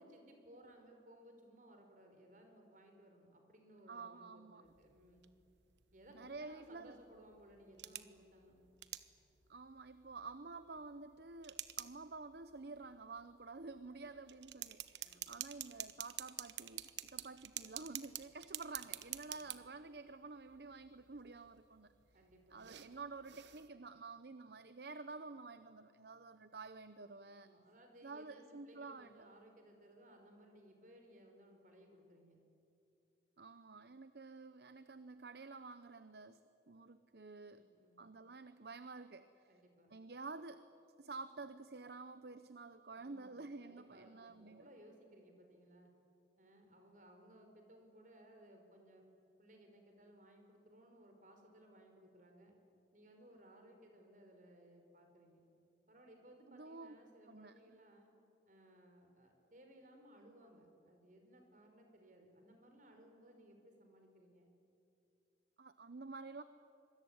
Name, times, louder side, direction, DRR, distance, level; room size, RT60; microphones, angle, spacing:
voice 1, 0.0-5.3 5.9-8.5 15.0-15.4 19.3-19.5 22.1-22.6 27.3-32.4 37.5-38.0 39.5-39.9 43.0-45.9 46.4-49.0 49.4-52.5 52.9-55.5 55.9-58.1 58.5-64.5, right 1 dB, 45° right, 4 dB, 4.9 m, -61 dB
voice 2, 3.9-4.6 6.1-7.0 9.5-21.9 22.5-27.5 28.0-29.1 33.4-36.4 36.7-37.6 38.0-39.6 39.9-40.6 41.0-44.7 56.5-57.0 57.3-57.5 65.6-66.4, right 3 dB, 65° right, 12 dB, 0.8 m, -50 dB
sound 1, 4.6-23.7, right 13 dB, 85° right, 1.1 m, -51 dB
26.0 x 21.5 x 9.7 m, 2.6 s
head